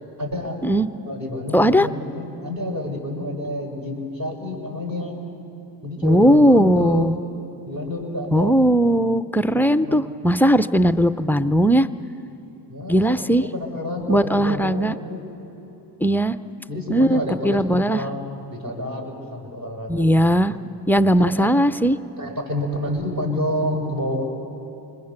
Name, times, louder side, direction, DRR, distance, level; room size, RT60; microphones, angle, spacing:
voice 1, 0.2-0.6 1.1-5.1 5.8-7.1 7.7-8.6 9.8-10.1 12.7-15.3 16.7-20.0 20.5-20.6 21.2-21.5 22.2-24.2, left 1 dB, 40° right, -1 dB, 6.4 m, -29 dB
voice 2, 1.5-1.9 6.0-7.2 8.3-11.9 12.9-13.5 14.1-14.9 16.0-16.4 16.9-18.0 19.9-20.5 20.9-22.0, equal, 5° left, 12 dB, 0.5 m, -18 dB
26.0 x 21.5 x 7.0 m, 3.0 s
supercardioid pair, 80°, 45 cm